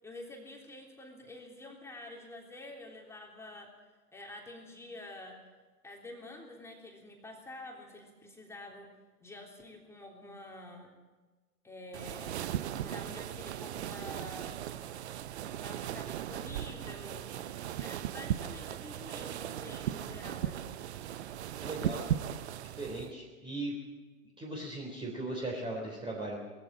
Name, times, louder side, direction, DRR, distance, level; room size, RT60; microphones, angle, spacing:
voice 1, 0.0-3.7 4.1-5.4 5.8-10.9 11.6-12.5 12.8-14.6 15.6-17.3 17.8-20.7 21.1-21.3, left 2 dB, 5° left, 0 dB, 3.4 m, -48 dB
Running in a dress, 11.9-23.1, right 11 dB, 45° right, 0.9 m, -37 dB
voice 2, 21.6-22.0 22.6-23.7 24.4-26.4, right 2 dB, 10° right, -1 dB, 3.6 m, -38 dB
21.0 x 15.0 x 9.1 m, 1.3 s
figure-of-eight pair, 110°, 47 cm